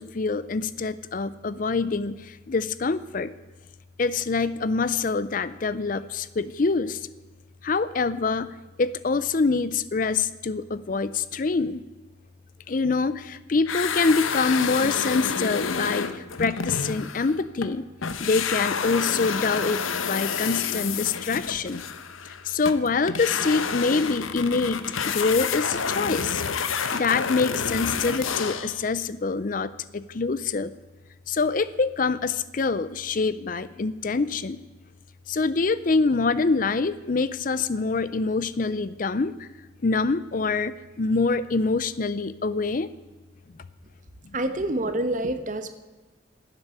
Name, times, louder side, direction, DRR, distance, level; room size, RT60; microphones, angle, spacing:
voice 1, 0.0-3.3 4.0-7.0 7.6-11.8 12.7-17.8 18.2-21.8 22.2-26.4 26.7-30.7 31.3-34.6 35.3-39.5 39.8-42.9, left 4 dB, 45° left, 16 dB, 0.5 m, -25 dB
sound 1, 13.7-17.8 18.0-28.8, left 6 dB, 90° left, 0.9 m, -29 dB
voice 2, 44.3-45.8, right 1 dB, 40° right, 10 dB, 1.1 m, -27 dB
12.0 x 8.1 x 9.5 m, 1.3 s
head